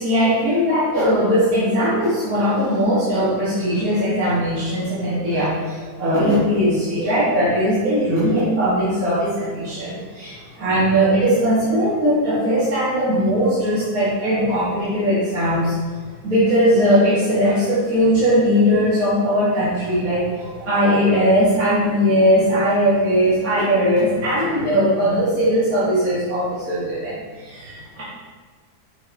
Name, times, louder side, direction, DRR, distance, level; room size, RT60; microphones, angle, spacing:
voice 1, 0.0-15.7 16.2-28.0, equal, 55° right, -11 dB, 2.4 m, -19 dB
6.6 x 5.7 x 3.5 m, 1.5 s
omnidirectional pair, 1.8 m